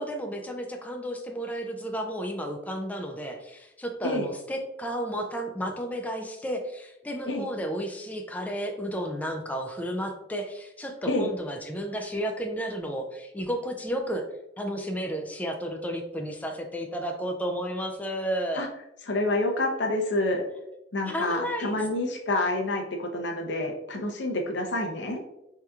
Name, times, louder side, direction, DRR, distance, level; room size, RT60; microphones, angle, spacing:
voice 1, 0.0-14.2 14.6-18.7 21.0-21.9, equal, 10° left, 3 dB, 0.3 m, -32 dB
voice 2, 19.1-20.4 20.9-25.2, left 2 dB, 65° left, 2 dB, 0.7 m, -28 dB
4.7 x 2.8 x 2.3 m, 0.87 s
head